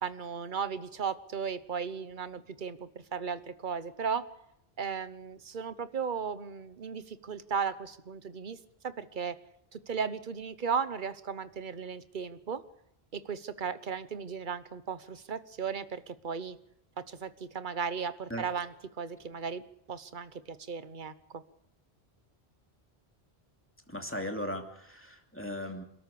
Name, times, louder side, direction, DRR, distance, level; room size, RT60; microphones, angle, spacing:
voice 1, 0.0-4.3 4.8-8.6 8.8-9.3 9.7-12.6 13.1-16.6 17.1-19.6 19.9-21.4, right 6 dB, 50° right, 13 dB, 1.2 m, -36 dB
voice 2, 23.9-25.8, left 1 dB, 10° left, 3 dB, 2.7 m, -37 dB
27.0 x 13.5 x 8.6 m, 0.78 s
omnidirectional pair, 1.1 m